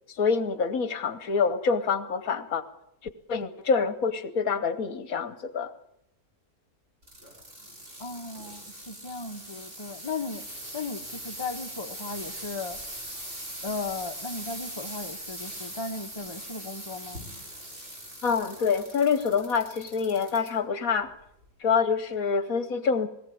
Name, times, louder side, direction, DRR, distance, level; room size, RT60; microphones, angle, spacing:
voice 1, 0.2-2.6 3.3-5.7 18.2-21.1 21.6-23.1, left 5 dB, 60° left, 12 dB, 1.4 m, -26 dB
sound 1, 7.0-20.5 21.0-21.5 22.1-22.2, right 1 dB, 45° right, 7.4 m, -41 dB
voice 2, 8.0-10.4 10.7-12.8 13.6-17.2, left 3 dB, 20° left, 4 dB, 1.1 m, -36 dB
20.0 x 18.0 x 8.5 m, 0.78 s
omnidirectional pair, 1.7 m